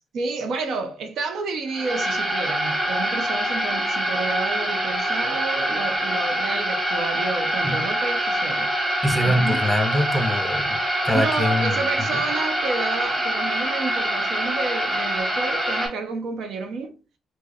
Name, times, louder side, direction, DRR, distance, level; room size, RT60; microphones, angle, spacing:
voice 1, 0.1-8.7 9.2-9.6 11.1-17.0, right 4 dB, 70° right, 0.6 m, -30 dB
sound 1, 1.7-15.9, right 1 dB, 25° right, 1.8 m, -25 dB
voice 2, 9.0-11.7 12.1-12.2, equal, ahead, 0.9 m, -23 dB
4.6 x 2.1 x 2.7 m
cardioid pair, 90°, 0 cm